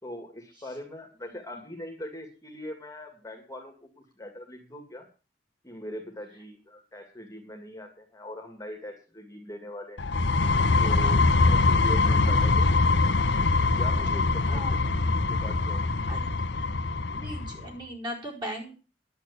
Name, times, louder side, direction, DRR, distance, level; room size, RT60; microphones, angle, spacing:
voice 1, 0.0-5.1 5.6-10.0 10.8-12.7 13.7-14.9 15.3-15.8, left 1 dB, 20° left, 3 dB, 2.1 m, -41 dB
sound 1, 10.0-17.6, left 3 dB, 75° left, 1.1 m, -23 dB
voice 2, 17.1-18.7, equal, 25° right, -1 dB, 4.7 m, -37 dB
11.0 x 8.3 x 8.2 m, 0.36 s
head